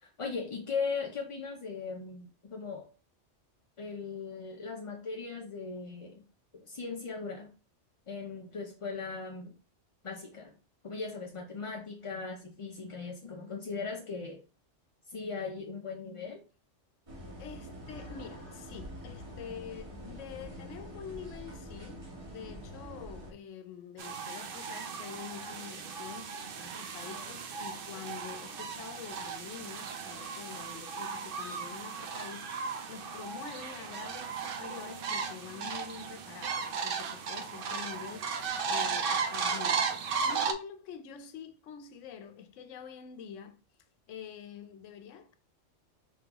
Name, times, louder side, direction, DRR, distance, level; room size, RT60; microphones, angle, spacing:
voice 1, 0.0-2.9 3.8-6.2 6.5-7.5 8.1-9.5 10.0-10.5 10.8-14.4 15.1-16.4, left 4 dB, 45° left, 0.4 m, -38 dB
sound 1, 17.1-23.3, equal, 30° right, 1.3 m, -45 dB
voice 2, 17.4-43.6 44.1-45.4, left 7 dB, 80° left, 1.0 m, -46 dB
sound 2, 24.0-40.5, right 5 dB, 60° right, 0.7 m, -36 dB
5.0 x 3.7 x 2.9 m
omnidirectional pair, 1.3 m